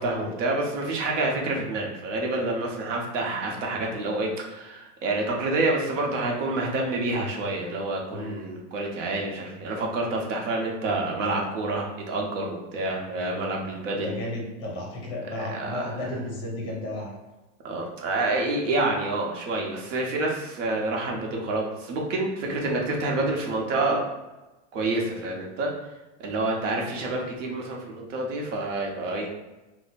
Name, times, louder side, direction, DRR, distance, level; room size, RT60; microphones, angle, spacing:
voice 1, 0.0-14.2 15.3-16.2 17.6-24.0 24.7-25.7 26.2-29.3, right 2 dB, 80° right, 0 dB, 1.0 m, -28 dB
voice 2, 14.0-17.1, left 1 dB, 15° left, -1 dB, 0.5 m, -33 dB
2.7 x 2.1 x 4.0 m, 1.1 s
supercardioid pair, 165°, 37 cm